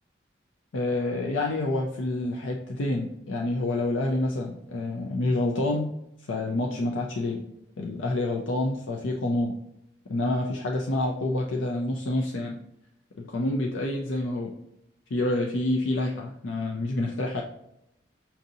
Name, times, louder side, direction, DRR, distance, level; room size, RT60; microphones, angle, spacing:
voice 1, 0.7-5.9 6.3-7.4 7.8-9.5 10.1-12.6 13.3-14.5 15.1-17.4, left 2 dB, 85° left, 0 dB, 0.5 m, -28 dB
5.8 x 2.7 x 2.6 m, 0.82 s
head